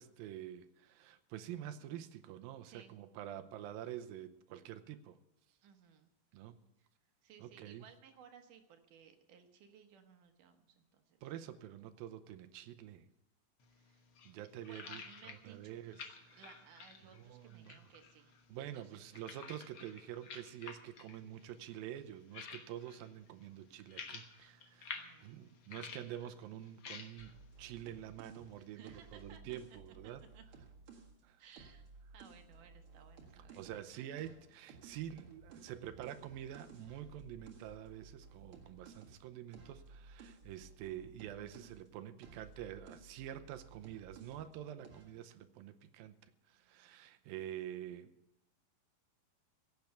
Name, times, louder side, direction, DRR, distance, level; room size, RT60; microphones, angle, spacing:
voice 1, 0.0-5.2 6.3-6.6 7.4-7.8 11.2-13.1 14.3-16.0 16.3-16.5 17.2-17.8 18.5-30.2 31.2-31.4 33.6-48.1, right 11 dB, 85° right, 2.6 m, -47 dB
voice 2, 2.6-3.0 5.6-6.1 6.8-6.9 7.2-11.2 12.4-12.6 13.7-14.1 14.3-19.2 25.0-25.7 28.6-29.8 30.3-30.4 31.4-31.8 32.1-33.6 33.9-34.1, right 7 dB, 70° right, 2.5 m, -60 dB
sound 1, 13.6-29.3, left 6 dB, 60° left, 1.4 m, -53 dB
sound 2, 27.2-31.2 31.5-33.9 34.2-41.9 42.2-44.6 44.8-45.2, right 4 dB, 45° right, 2.2 m, -57 dB
16.0 x 8.4 x 6.9 m
omnidirectional pair, 4.1 m